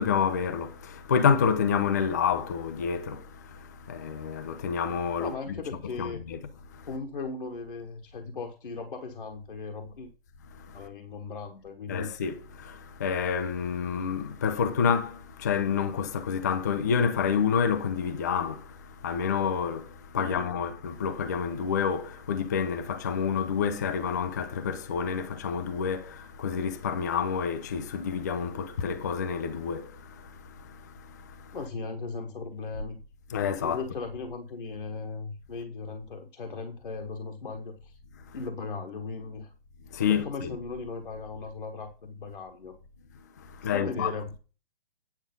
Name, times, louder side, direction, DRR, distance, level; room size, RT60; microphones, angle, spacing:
voice 1, 0.0-3.2 3.9-5.5 6.0-6.4 11.9-18.6 19.0-19.9 20.1-29.9 33.3-33.8 39.9-40.6 43.6-44.1, left 6 dB, 20° left, 0.4 m, -28 dB
voice 2, 5.2-6.2 6.8-10.1 10.7-12.1 20.2-20.5 31.5-33.0 33.6-37.9 38.3-39.5 40.2-42.7 43.6-44.3, left 4 dB, 55° left, 1.3 m, -37 dB
9.4 x 4.8 x 5.3 m
figure-of-eight pair, 135°, 30 cm